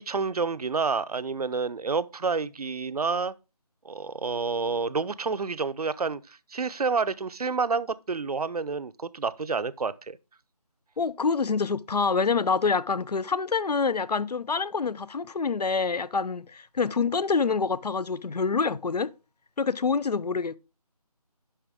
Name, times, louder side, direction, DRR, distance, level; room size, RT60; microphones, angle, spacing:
voice 1, 0.0-3.3 3.8-6.2 6.5-10.2, right 4 dB, 70° right, 0.6 m, -29 dB
voice 2, 11.0-19.1 19.6-20.6, left 5 dB, 85° left, 0.6 m, -26 dB
10.0 x 5.7 x 3.5 m
figure-of-eight pair, 170°, 20 cm